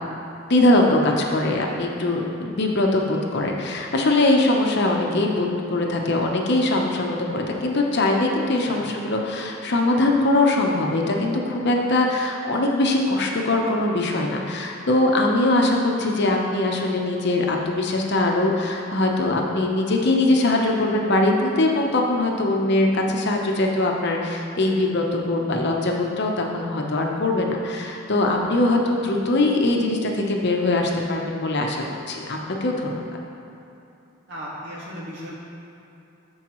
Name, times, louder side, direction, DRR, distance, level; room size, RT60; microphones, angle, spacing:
voice 1, 0.5-33.0, left 2 dB, 60° left, 1 dB, 0.8 m, -22 dB
voice 2, 34.3-35.3, equal, 65° right, -5 dB, 1.8 m, -35 dB
13.5 x 4.7 x 3.1 m, 3.0 s
head